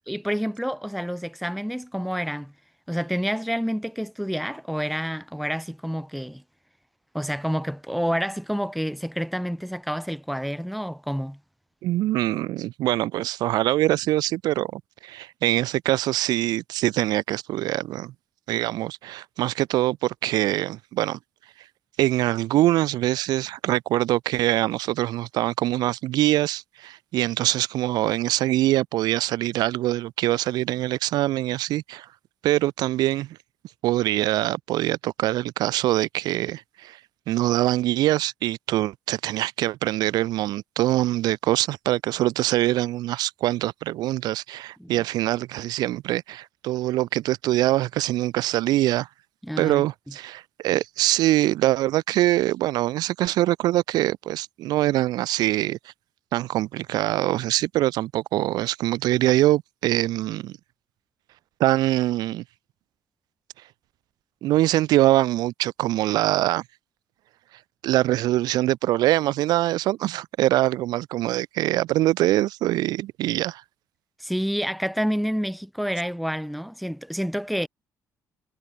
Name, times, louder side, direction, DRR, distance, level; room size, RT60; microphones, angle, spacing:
voice 1, 0.1-2.5 2.9-6.4 7.1-11.4 44.8-44.9 49.4-49.8 74.2-77.7, equal, ahead, 1.0 m, -28 dB
voice 2, 11.8-18.1 18.5-21.2 22.0-32.1 32.4-33.4 33.8-37.0 37.3-49.1 49.6-55.8 56.3-60.6 61.6-62.4 64.4-66.6 67.8-73.6, right 15 dB, 90° right, 1.5 m, -23 dB
cardioid pair, 125°, 7 cm